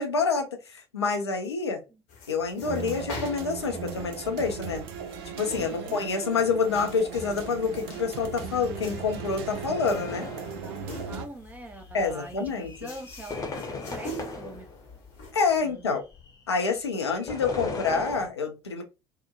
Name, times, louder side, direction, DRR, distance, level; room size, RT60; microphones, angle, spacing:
voice 1, 0.0-1.8 2.3-4.8 5.3-10.3 11.1-11.2 11.9-12.7 15.3-16.0 16.5-18.8, left 5 dB, 80° left, 0.5 m, -27 dB
sound 1, 2.1-15.3, left 1 dB, 55° left, 0.9 m, -46 dB
sound 2, 2.6-11.3, right 6 dB, 65° right, 0.5 m, -37 dB
sound 3, 3.6-18.3, left 3 dB, 25° left, 0.9 m, -41 dB
voice 2, 5.5-6.0 10.6-14.7 15.6-16.0, right 2 dB, 10° right, 0.6 m, -44 dB
2.7 x 2.1 x 2.3 m
figure-of-eight pair, 60°, 14 cm